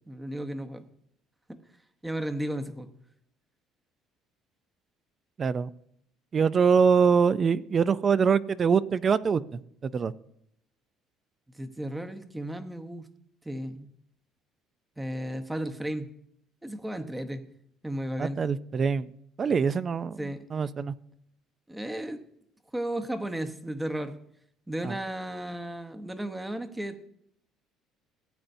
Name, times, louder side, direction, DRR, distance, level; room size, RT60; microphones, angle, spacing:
voice 1, 0.1-0.8 2.0-2.9 11.6-13.1 13.4-13.9 15.0-16.1 16.6-17.4 17.8-18.4 20.2-20.4 21.7-22.2 22.7-24.2 24.7-27.1, right 1 dB, 10° right, 8 dB, 0.9 m, -34 dB
voice 2, 5.4-5.7 6.3-9.6 9.9-10.1 18.2-19.1 19.4-20.9 24.8-24.9, right 6 dB, 35° right, 16 dB, 0.4 m, -24 dB
16.5 x 8.9 x 2.7 m, 0.72 s
cardioid pair, 120°, 0 cm